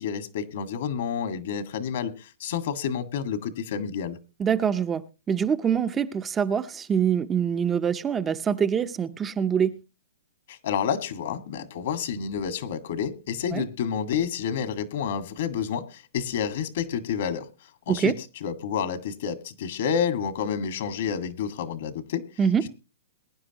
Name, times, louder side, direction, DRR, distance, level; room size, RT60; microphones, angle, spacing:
voice 1, 0.0-4.2 10.5-17.5 17.9-18.1 18.4-22.3 22.6-22.7, left 7 dB, 60° left, 1.8 m, -29 dB
voice 2, 4.4-9.8 13.5-13.6 17.9-18.2 22.4-22.7, right 7 dB, 15° right, 0.6 m, -25 dB
22.0 x 10.0 x 2.9 m
hypercardioid pair, 140°, 0 cm